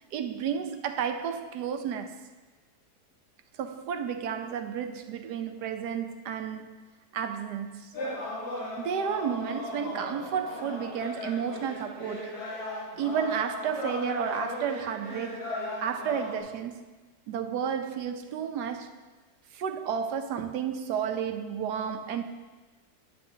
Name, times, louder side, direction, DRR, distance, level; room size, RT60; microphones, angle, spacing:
voice 1, 0.1-2.2 3.6-6.8 7.1-7.9 8.8-12.4 13.0-15.4 15.8-16.8 17.3-18.9 19.5-22.2, right 8 dB, 90° right, 1.3 m, -32 dB
sound 1, 7.9-16.4, left 1 dB, 85° left, 3.3 m, -37 dB
14.5 x 9.8 x 2.8 m
omnidirectional pair, 1.7 m